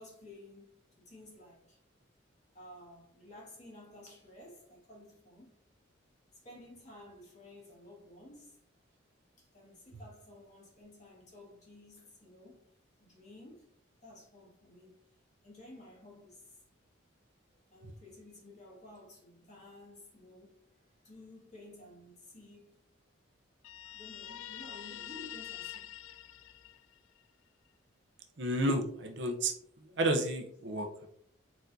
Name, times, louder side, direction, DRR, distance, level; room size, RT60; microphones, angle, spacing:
voice 1, 0.0-1.8 2.5-5.5 6.4-8.6 9.4-12.7 13.0-13.7 14.0-15.0 15.4-16.6 17.7-20.6 20.8-22.8 23.9-25.9 28.3-28.4 30.6-30.8, left 1 dB, 35° left, 1.8 m, -53 dB
Guitar, 23.6-27.2, left 12 dB, 85° left, 0.4 m, -46 dB
voice 2, 28.4-31.1, right 1 dB, 60° right, 0.7 m, -32 dB
4.6 x 4.4 x 2.6 m
head